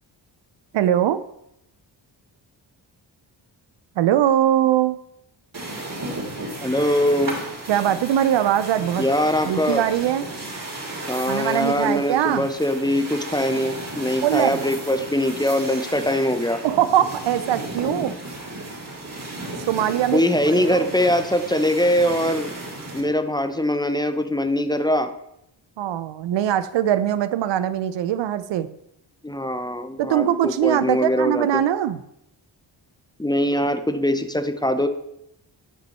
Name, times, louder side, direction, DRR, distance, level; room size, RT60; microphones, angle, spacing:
voice 1, 0.7-1.2 4.0-5.0 7.7-9.1 9.4-10.3 11.3-12.5 14.2-14.6 16.6-18.2 19.6-20.2 20.5-20.9 25.8-28.7 30.0-32.0, right 11 dB, 65° right, 14 dB, 0.6 m, -21 dB
sound 1, 5.5-23.0, right 2 dB, 45° right, 3.2 m, -34 dB
voice 2, 6.6-7.4 9.0-9.8 11.1-16.6 20.1-22.5 22.9-25.1 29.2-31.5 33.2-34.9, left 1 dB, 10° left, 9 dB, 0.7 m, -22 dB
9.1 x 5.3 x 4.3 m, 0.80 s
supercardioid pair, 50°, 47 cm